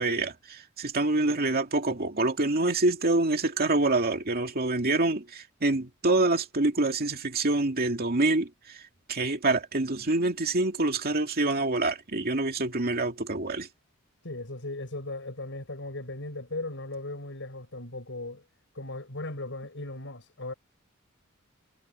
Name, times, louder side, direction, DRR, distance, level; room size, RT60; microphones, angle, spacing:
voice 1, 0.0-8.8 9.1-13.7, right 2 dB, 45° right, 2.4 m, -26 dB
voice 2, 14.2-18.4 18.7-20.5, left 2 dB, 60° left, 7.6 m, -37 dB
head